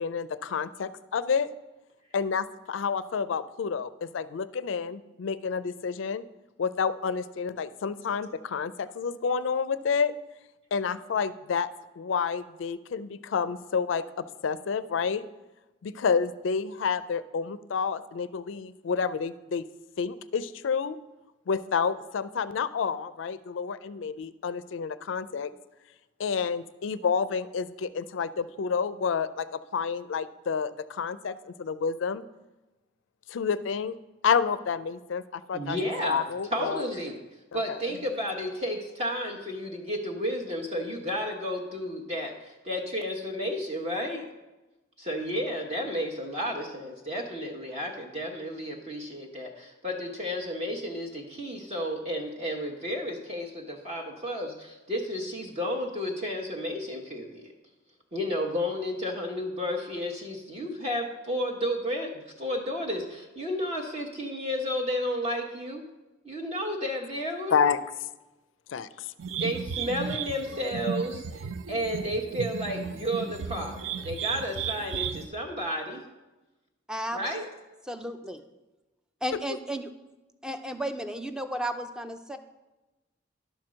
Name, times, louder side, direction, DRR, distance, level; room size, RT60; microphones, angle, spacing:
voice 1, 0.0-1.5 2.1-6.2 6.6-10.1 10.7-11.7 12.0-15.2 15.8-19.6 20.0-21.0 21.5-25.5 26.2-32.2 33.3-33.9 34.2-35.8 36.0-36.8 37.5-37.8 67.5-67.8 68.7-69.1 79.5-79.6, left 6 dB, 70° left, 15 dB, 0.4 m, -29 dB
voice 2, 35.5-36.2 36.5-37.2 37.5-44.2 45.0-57.5 58.1-65.8 66.2-67.6 69.4-76.0 77.1-77.5, equal, 35° right, 0 dB, 1.0 m, -32 dB
sound 1, 69.2-75.3, right 6 dB, 90° right, 0.5 m, -34 dB
voice 3, 77.9-78.4 79.2-79.9 80.4-82.4, right 1 dB, 5° right, 8 dB, 0.4 m, -33 dB
11.0 x 4.4 x 6.3 m, 1.1 s
head